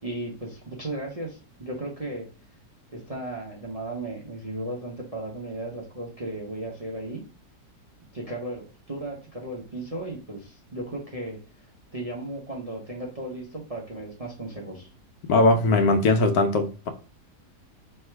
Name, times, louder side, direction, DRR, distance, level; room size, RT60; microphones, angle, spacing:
voice 1, 0.0-2.3 2.9-7.2 8.1-11.7 11.9-14.9, right 1 dB, 35° right, -2 dB, 0.6 m, -35 dB
voice 2, 15.3-16.9, left 2 dB, 70° left, 7 dB, 1.1 m, -20 dB
3.3 x 2.8 x 4.4 m, 0.34 s
omnidirectional pair, 1.8 m